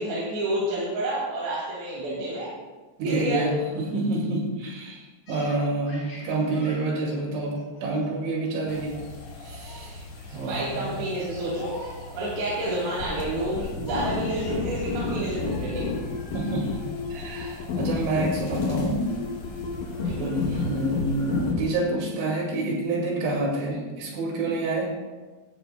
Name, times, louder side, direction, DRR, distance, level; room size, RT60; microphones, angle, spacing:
voice 1, 0.0-2.5 3.0-3.5 10.4-11.7 12.1-15.9 20.0-20.3, right 1 dB, 70° right, -7 dB, 4.3 m, -29 dB
voice 2, 3.0-9.0 9.4-11.0 16.3-16.8 17.1-19.0 20.1-24.9, right 2 dB, 85° right, -1 dB, 4.6 m, -28 dB
Laughter, 5.3-8.3 8.7-9.0 9.3-9.9 10.4-10.7 11.5-12.4 13.9-15.2 15.5-15.6 16.2-16.7, left 1 dB, 25° left, 3.8 m, -46 dB
sound 1, 8.7-21.5, left 2 dB, 50° left, 2.2 m, -42 dB
sound 2, 13.0-21.8, left 4 dB, 85° left, 1.7 m, -31 dB
16.0 x 12.0 x 2.2 m, 1.3 s
omnidirectional pair, 5.2 m